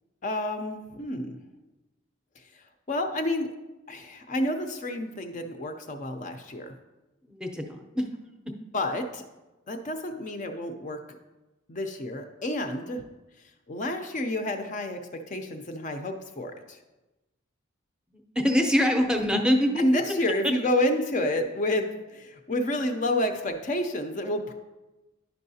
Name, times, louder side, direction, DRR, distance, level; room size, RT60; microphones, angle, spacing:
voice 1, 0.2-1.4 2.5-3.5 3.9-6.7 8.7-9.2 9.7-11.0 11.7-13.0 13.7-16.8 19.8-24.5, left 1 dB, 40° left, 6 dB, 0.5 m, -29 dB
voice 2, 7.2-8.1 18.1-19.8, equal, 5° right, 3 dB, 0.6 m, -24 dB
10.5 x 5.5 x 2.7 m, 1.1 s
head